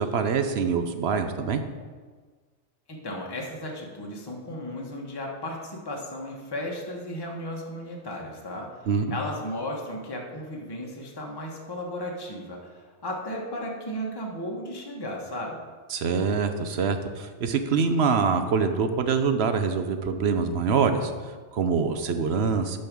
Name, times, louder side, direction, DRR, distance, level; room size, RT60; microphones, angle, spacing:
voice 1, 0.0-1.6 8.9-9.2 15.9-22.8, right 5 dB, 65° right, 8 dB, 0.9 m, -25 dB
voice 2, 2.9-8.8 9.1-15.6, left 1 dB, 20° left, -1 dB, 1.2 m, -35 dB
8.7 x 5.5 x 6.1 m, 1.5 s
omnidirectional pair, 1.3 m